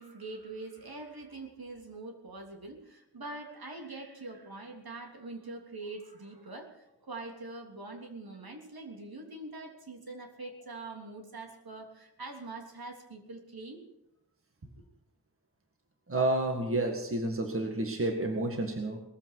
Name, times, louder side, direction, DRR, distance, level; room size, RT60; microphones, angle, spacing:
voice 1, 0.0-13.8, right 2 dB, 65° right, 2 dB, 3.4 m, -44 dB
voice 2, 16.1-19.0, right 2 dB, 35° right, 3 dB, 1.9 m, -30 dB
19.5 x 14.5 x 4.8 m, 0.88 s
wide cardioid pair, 110°, 39 cm